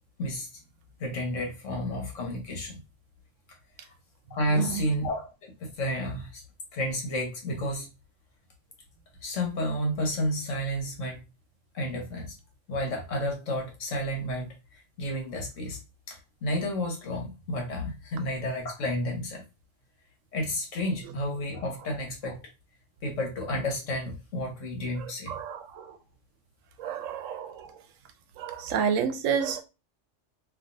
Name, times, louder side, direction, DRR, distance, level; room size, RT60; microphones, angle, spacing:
voice 1, 0.2-0.6 1.0-2.8 3.8-3.9 4.3-6.4 6.7-7.9 9.2-11.2 11.7-12.4 12.7-15.8 16.1-19.4 20.3-22.4 23.0-25.4, equal, 80° left, 1.4 m, -31 dB
voice 2, 4.5-4.8 25.3-26.0 26.8-27.8 28.4-29.6, right 7 dB, 90° right, 1.0 m, -30 dB
3.3 x 2.6 x 2.6 m
omnidirectional pair, 1.3 m